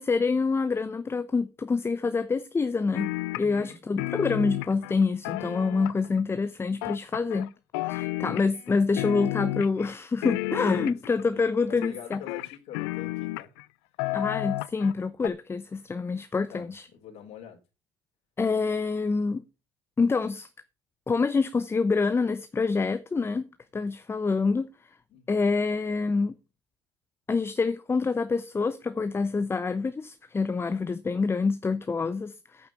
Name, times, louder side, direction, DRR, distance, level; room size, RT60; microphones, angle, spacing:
voice 1, 0.0-7.5 7.9-12.2 14.1-16.9 18.4-19.4 20.0-20.5 21.1-24.7 25.3-26.3 27.3-32.7, left 4 dB, 20° left, 0.8 m, -26 dB
sound 1, 2.9-3.7 4.0-6.2 6.8-7.5 7.7-8.7 9.0-9.9 10.2-11.2 11.8-13.6 14.0-14.9 15.2-15.3, left 20 dB, 80° left, 0.5 m, -31 dB
voice 2, 3.4-3.8 10.8-11.0 11.2-13.5 16.5-17.6 25.1-25.5, left 8 dB, 60° left, 3.7 m, -45 dB
8.6 x 5.9 x 7.1 m
supercardioid pair, 80°, 12 cm